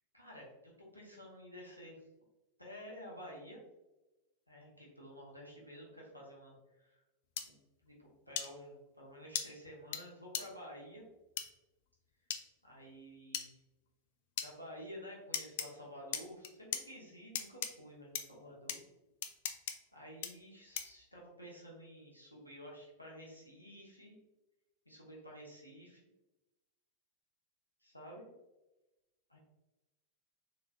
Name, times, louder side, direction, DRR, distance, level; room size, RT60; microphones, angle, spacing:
voice 1, 0.1-2.0 2.6-3.6 4.5-7.0 7.5-11.0 12.6-13.5 14.4-18.8 19.9-24.2 24.9-26.1 27.8-28.3 29.3-29.4, equal, 90° right, -3 dB, 0.9 m, -51 dB
sound 1, 7.4-7.5 8.4-8.5 9.4-9.5 9.9-10.0 10.3-10.4 11.4-11.5 12.3-12.4 13.3-13.5 14.4-14.5 15.3-15.7 16.1-16.8 17.4-17.7 18.2-18.3 18.7-18.8 19.2-19.7 20.2-20.3 20.8-21.0, left 9 dB, 50° left, 0.4 m, -37 dB
3.9 x 3.1 x 2.3 m, 1.0 s
figure-of-eight pair, 90°, 0 cm